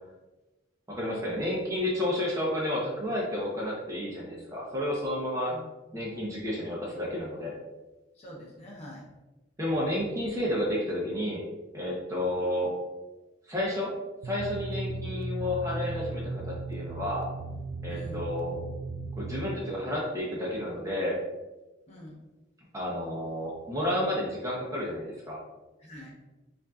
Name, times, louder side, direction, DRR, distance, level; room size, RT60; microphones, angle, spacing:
voice 1, 0.9-5.5 5.9-7.5 9.6-11.4 11.7-12.7 13.5-13.9 14.2-17.3 17.8-18.6 19.2-21.2 22.7-25.4, left 1 dB, 15° right, -5 dB, 0.7 m, -31 dB
voice 2, 8.1-9.0 17.9-18.2 21.9-22.2 25.8-26.1, equal, 30° left, -4 dB, 0.8 m, -45 dB
sound 1, 14.2-19.6, right 2 dB, 80° right, 0.3 m, -36 dB
5.2 x 2.6 x 2.4 m, 1.1 s
head